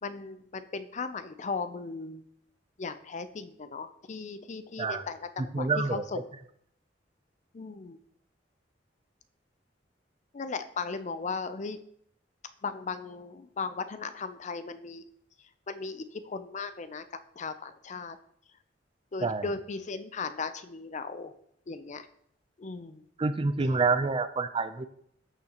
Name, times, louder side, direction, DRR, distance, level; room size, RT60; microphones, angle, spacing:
voice 1, 0.0-2.2 2.8-6.3 7.5-8.0 10.3-11.8 12.6-15.0 15.7-17.0 17.4-18.2 19.1-21.3 21.7-22.1 22.6-23.0, left 4 dB, 40° left, 11 dB, 0.5 m, -37 dB
voice 2, 5.5-6.0 19.2-19.4 23.2-24.9, right 4 dB, 30° right, 12 dB, 0.5 m, -27 dB
14.0 x 6.6 x 2.9 m, 0.69 s
head